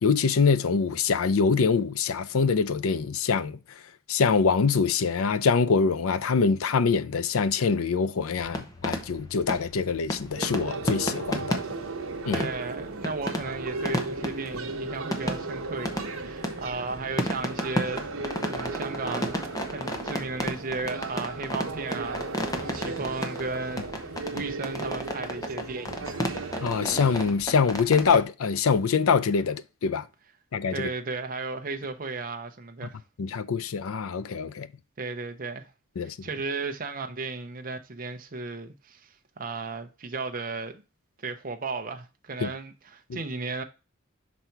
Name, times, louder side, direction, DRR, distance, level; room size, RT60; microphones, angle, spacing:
voice 1, 0.0-3.6 4.1-11.6 12.3-12.5 24.3-24.4 26.6-30.1 30.5-30.9 33.2-34.7 36.0-36.3 42.4-42.5 43.1-43.2, left 5 dB, 85° left, 0.5 m, -24 dB
sound 1, 8.3-28.2, equal, 15° left, 0.9 m, -34 dB
sound 2, 10.3-27.3, right 3 dB, 85° right, 0.9 m, -36 dB
voice 2, 12.3-18.1 18.5-26.1 30.7-33.0 35.0-35.7 36.0-40.8 41.2-43.6, right 3 dB, 40° right, 0.6 m, -35 dB
5.7 x 4.1 x 4.5 m
head